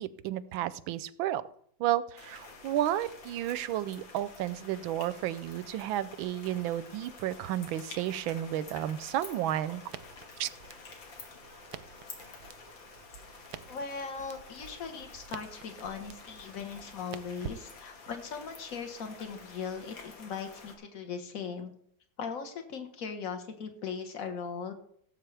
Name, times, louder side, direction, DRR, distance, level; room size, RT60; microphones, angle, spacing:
voice 1, 0.0-1.4 1.8-9.8 10.4-10.5, right 12 dB, 85° right, 16 dB, 1.4 m, -32 dB
sound 1, 2.2-20.8, left 4 dB, 75° left, 2.5 m, -50 dB
Crackle, 9.9-18.2, right 9 dB, 65° right, 1.1 m, -49 dB
voice 2, 13.7-21.7 22.2-24.7, left 6 dB, 45° left, 6 dB, 1.7 m, -39 dB
17.0 x 8.0 x 3.4 m, 0.65 s
omnidirectional pair, 2.1 m